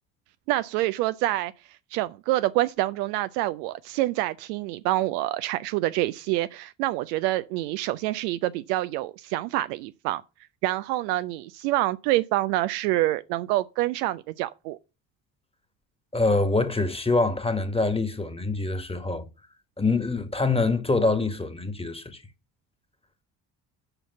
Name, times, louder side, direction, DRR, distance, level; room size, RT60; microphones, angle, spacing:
voice 1, 0.5-10.2 10.6-14.8, right 16 dB, 70° right, 0.5 m, -27 dB
voice 2, 16.1-19.2 19.8-22.2, left 3 dB, 10° left, 1.5 m, -25 dB
6.9 x 5.6 x 7.0 m
figure-of-eight pair, 50°, 49 cm